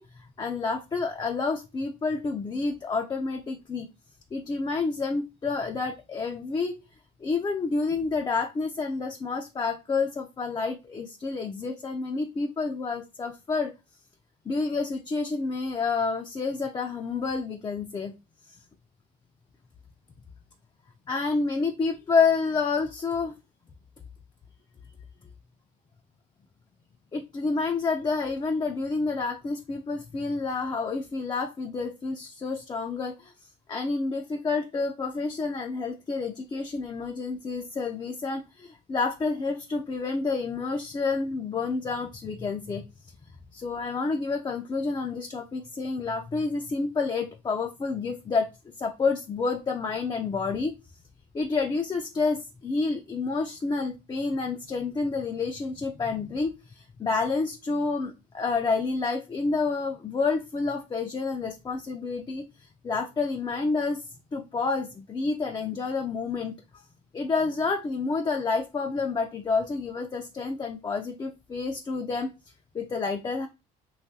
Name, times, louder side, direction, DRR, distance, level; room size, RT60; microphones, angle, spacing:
voice 1, 0.0-3.9 4.3-6.8 7.2-13.7 14.5-18.1 18.5-18.6 21.1-23.3 27.1-33.3 33.7-42.9 43.5-48.5 48.8-50.7 51.3-64.0 64.3-66.8 67.1-72.3 72.7-73.5, left 4 dB, 25° left, 4 dB, 0.4 m, -29 dB
2.9 x 2.4 x 2.7 m, 0.26 s
supercardioid pair, 75°, 19 cm